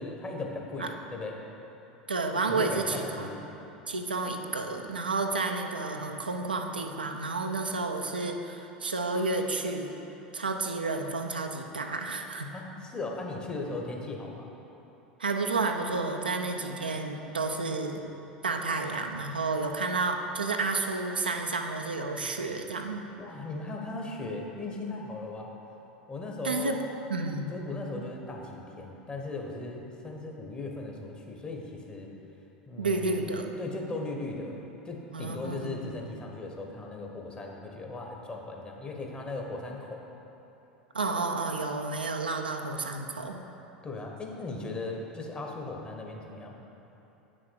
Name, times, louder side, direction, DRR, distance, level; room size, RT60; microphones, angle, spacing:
voice 1, 0.0-1.4 2.5-3.4 12.5-14.5 23.2-25.5 26.1-26.8 27.5-32.1 32.7-33.3 33.6-34.6 34.8-40.0 43.8-46.6, left 2 dB, 20° left, 0 dB, 1.2 m, -38 dB
voice 2, 2.1-3.3 3.9-9.9 10.3-12.5 15.2-18.0 18.4-23.0 26.4-26.8 27.1-27.5 32.8-33.5 35.1-35.9 40.9-43.4, right 3 dB, 80° right, 3 dB, 0.5 m, -31 dB
8.7 x 6.3 x 4.6 m, 3.0 s
figure-of-eight pair, 80°, 5 cm